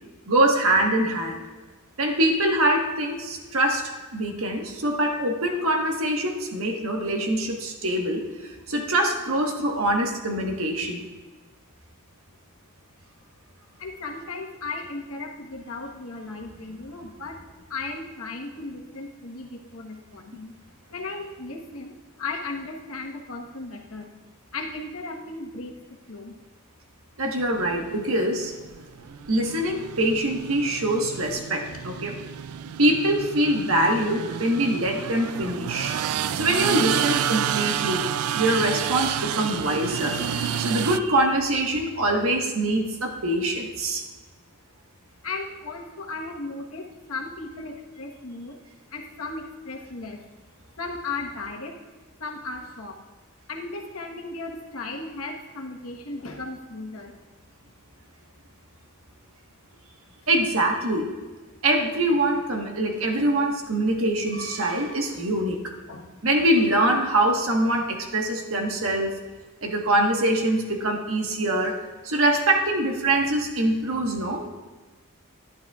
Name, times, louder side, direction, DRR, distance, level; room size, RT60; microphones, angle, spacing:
voice 1, 0.3-1.4 2.0-11.0 27.2-28.5 29.3-32.2 32.8-35.9 36.3-38.1 38.3-44.0 60.3-61.1 61.6-65.7 66.2-69.2 69.6-71.8 72.0-74.5, right 1 dB, 70° right, 2 dB, 1.4 m, -24 dB
voice 2, 13.8-17.4 17.7-20.5 20.9-24.1 24.5-25.7 26.1-26.3 31.7-31.8 45.2-48.6 48.9-50.2 50.8-51.8 52.2-53.0 53.5-57.1 60.2-60.3 62.1-62.2 63.2-63.4 65.1-65.2 65.9-66.1, left 3 dB, 75° left, 1 dB, 1.3 m, -36 dB
sound 1, 27.5-41.0, right 9 dB, 85° right, 0.4 m, -30 dB
11.5 x 11.0 x 2.4 m, 1.3 s
head